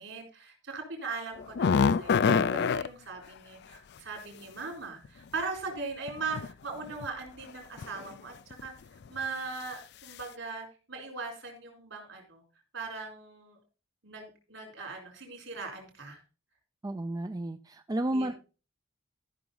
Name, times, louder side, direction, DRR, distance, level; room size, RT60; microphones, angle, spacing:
voice 1, 0.0-8.7 9.1-12.4 12.7-13.6 14.0-16.2 18.1-18.3, right 4 dB, 70° right, 2 dB, 4.2 m, -39 dB
sound 1, 1.4-2.9 5.0-5.1 6.1-6.5 6.8-7.1 7.8-8.1 8.5-8.7 9.1-9.2, left 5 dB, 55° left, 0.4 m, -25 dB
voice 2, 16.8-18.3, right 1 dB, 20° right, 9 dB, 0.4 m, -32 dB
14.5 x 6.0 x 3.9 m, 0.33 s
head